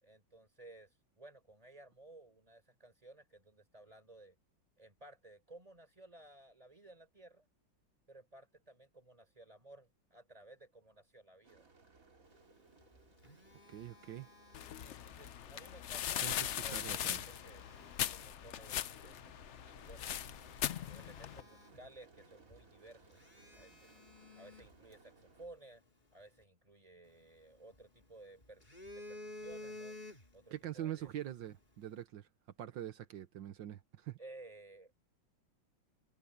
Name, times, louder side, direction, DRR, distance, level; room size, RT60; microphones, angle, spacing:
voice 1, 0.0-4.4 4.8-7.5 8.1-11.6 14.8-17.6 18.0-20.3 20.7-23.2 23.6-24.0 24.3-25.8 26.1-28.6 28.9-30.0 30.3-31.1 34.2-34.9, right 2 dB, 20° right, 4.3 m, -57 dB
sound 1, 11.4-25.5, right 3 dB, 45° right, 2.9 m, -64 dB
Telephone, 12.7-15.3 16.5-18.4 19.0-19.2 19.7-19.8 20.2-22.2 22.5-22.6 23.1-25.5 27.1-28.0 28.4-30.6 30.9-31.1, left 2 dB, 25° left, 4.6 m, -53 dB
voice 2, 13.7-14.3 16.2-17.2 30.5-32.3 32.6-34.2, right 11 dB, 80° right, 1.7 m, -44 dB
sound 2, 14.5-21.4, left 10 dB, 75° left, 0.6 m, -40 dB
omnidirectional pair, 2.0 m